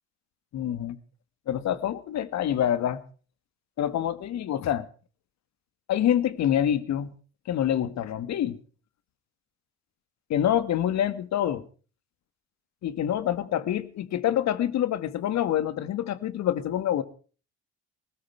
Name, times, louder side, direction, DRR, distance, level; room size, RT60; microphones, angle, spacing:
voice 1, 0.5-1.0 1.5-3.0 3.8-4.9 5.9-7.1 7.5-8.6 10.3-11.6 12.8-17.0, left 10 dB, 55° left, 14 dB, 1.9 m, -26 dB
20.0 x 18.0 x 3.4 m, 0.38 s
hypercardioid pair, 60°, 32 cm